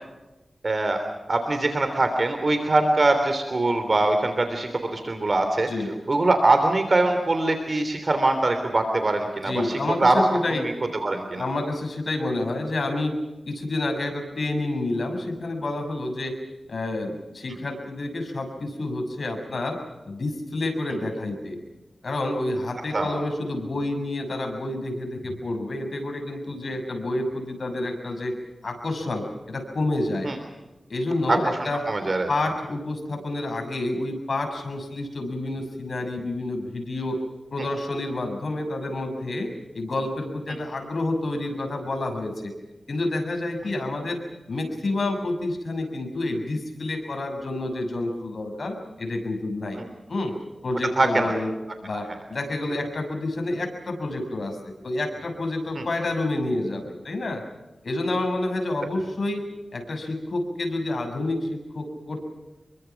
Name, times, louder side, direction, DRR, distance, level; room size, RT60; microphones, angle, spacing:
voice 1, 0.6-1.0 1.3-5.7 6.1-10.2 10.5-10.7 11.0-11.4 17.5-17.6 22.9-23.1 30.2-30.3 31.3-32.3 49.8-49.9 51.0-51.3 55.7-55.8, right 2 dB, 45° right, 6 dB, 3.3 m, -23 dB
voice 2, 9.4-10.7 11.4-13.1 13.5-16.3 16.7-19.8 20.1-21.6 22.0-28.3 28.6-30.3 30.9-31.8 32.3-37.2 37.5-42.5 42.9-44.2 44.5-49.8 50.1-50.4 50.6-51.5 51.8-57.4 57.8-59.4 59.7-62.3, left 2 dB, 65° left, 4 dB, 6.6 m, -29 dB
27.5 x 23.5 x 6.0 m, 1.0 s
wide cardioid pair, 70°, 0 cm